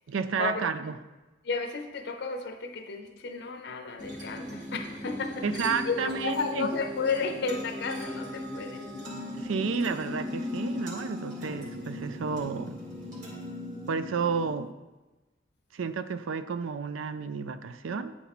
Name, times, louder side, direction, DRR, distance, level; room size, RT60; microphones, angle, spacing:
voice 1, 0.1-0.9 5.4-6.7 9.3-12.8 13.9-14.7 15.7-18.2, right 5 dB, 85° right, 12 dB, 0.4 m, -31 dB
voice 2, 1.4-8.9, left 4 dB, 60° left, 4 dB, 0.6 m, -33 dB
sound 1, 4.0-14.6, left 1 dB, 40° right, 2.0 m, -38 dB
9.0 x 4.2 x 4.1 m, 1.1 s
head